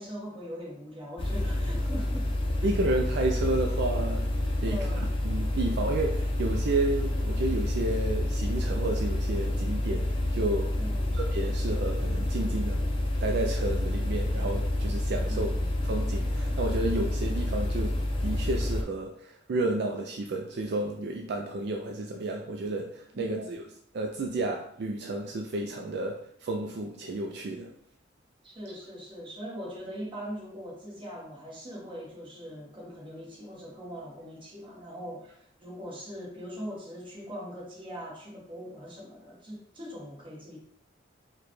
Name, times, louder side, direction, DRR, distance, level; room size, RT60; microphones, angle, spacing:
voice 1, 0.0-2.3 4.6-5.1 10.8-11.2 15.3-15.7 23.1-23.6 28.4-40.6, equal, 25° right, -3 dB, 1.0 m, -41 dB
sound 1, 1.2-18.8, left 1 dB, 30° left, 0.6 m, -28 dB
voice 2, 2.6-4.8 5.2-10.7 11.1-12.8 13.2-15.5 15.8-23.6 23.9-27.7, right 2 dB, 60° right, 2 dB, 0.4 m, -31 dB
4.7 x 2.2 x 3.0 m, 0.68 s
head